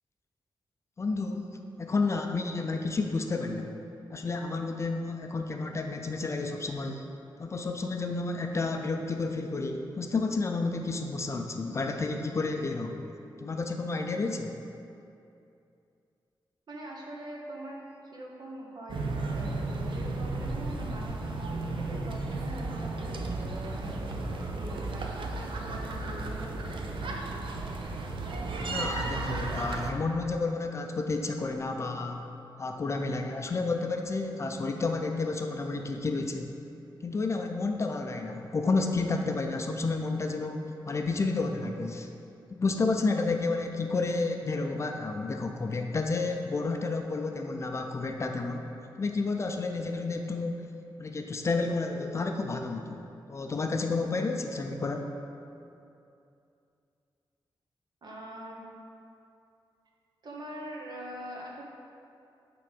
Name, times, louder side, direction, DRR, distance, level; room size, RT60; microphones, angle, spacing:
voice 1, 1.0-3.8 4.1-7.0 7.4-13.1 13.4-14.5 28.6-32.3 32.6-36.5 37.0-42.1 42.5-48.6 49.0-50.7 51.0-53.0 53.3-55.1, left 3 dB, 35° left, 4 dB, 0.4 m, -31 dB
voice 2, 16.7-17.8 18.1-23.9 24.5-27.2 58.0-58.6 60.2-61.7, right 1 dB, 55° right, -2 dB, 1.2 m, -43 dB
sound 1, 18.9-29.9, right 2 dB, 75° right, 0.6 m, -34 dB
8.8 x 3.8 x 5.3 m, 2.6 s
wide cardioid pair, 170°, 9 cm